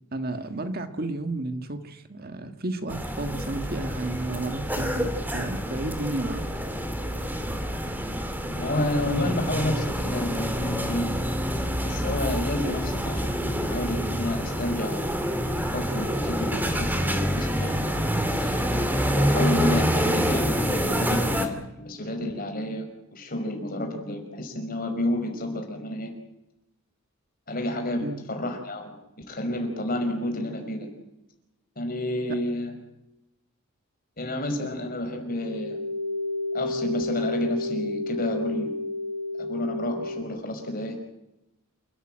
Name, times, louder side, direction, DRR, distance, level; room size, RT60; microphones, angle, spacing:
voice 1, 0.1-6.5 28.0-28.2, right 2 dB, 45° right, 8 dB, 1.6 m, -32 dB
sound 1, 2.9-21.5, equal, 10° right, 2.4 m, -27 dB
voice 2, 8.5-11.1 11.8-15.0 15.7-17.8 18.3-18.6 19.1-26.1 27.5-30.9 31.8-32.8 34.2-35.8 36.5-38.7 39.4-41.0, left 1 dB, 45° left, 4 dB, 5.4 m, -30 dB
sound 2, 35.3-40.2, left 2 dB, 85° right, 1.8 m, -31 dB
28.0 x 13.5 x 9.0 m, 0.91 s
head